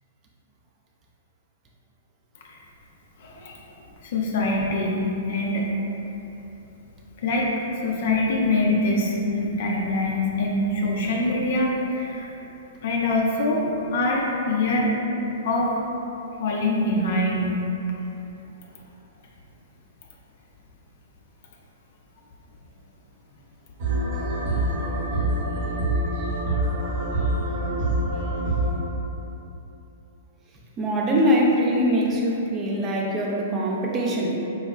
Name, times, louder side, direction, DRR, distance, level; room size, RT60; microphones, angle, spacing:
voice 1, 3.2-3.5 4.0-5.7 7.2-12.3 12.8-13.6 13.9-15.0 15.4-15.7 16.4-17.7, left 2 dB, 55° left, -2 dB, 0.4 m, -24 dB
sound 1, 23.8-28.8, right 1 dB, 50° right, 0.8 m, -25 dB
voice 2, 30.8-34.4, equal, 25° right, -3 dB, 0.5 m, -22 dB
4.6 x 2.2 x 2.3 m, 2.9 s
figure-of-eight pair, 110°, 0 cm